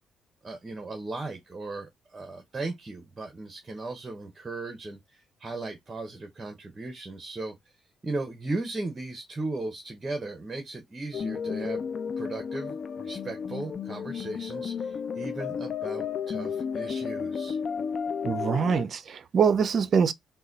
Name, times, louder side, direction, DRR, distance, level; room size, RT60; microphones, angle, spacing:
voice 1, 0.4-7.6 8.0-11.8 12.2-17.6, right 2 dB, 30° right, 1.0 m, -37 dB
sound 1, 11.1-18.8, left 6 dB, 50° left, 0.5 m, -33 dB
voice 2, 18.2-20.1, right 6 dB, 55° right, 0.5 m, -24 dB
3.9 x 2.2 x 3.9 m
cardioid pair, 90°, 0 cm